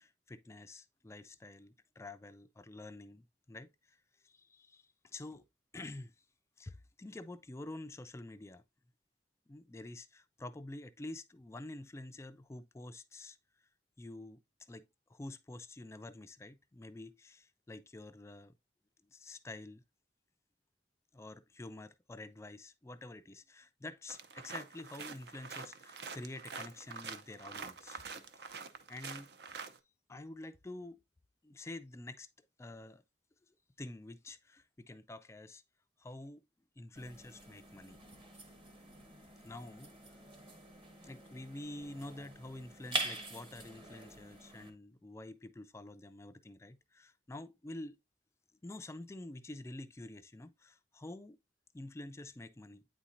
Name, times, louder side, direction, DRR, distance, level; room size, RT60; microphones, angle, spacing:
voice 1, 0.0-5.4 5.7-6.3 6.6-8.6 9.5-13.7 14.0-18.5 19.1-19.8 21.1-28.0 28.4-29.3 30.1-31.0 31.4-33.0 33.5-35.6 36.0-36.4 36.8-38.0 38.8-39.1 39.4-40.2 41.0-48.0 48.6-51.4 51.7-52.9, left 2 dB, 15° left, 0.3 m, -48 dB
sound 1, 24.1-29.8, right 5 dB, 65° right, 0.6 m, -46 dB
sound 2, 37.0-44.7, right 2 dB, 30° right, 1.2 m, -45 dB
8.9 x 4.2 x 2.5 m
head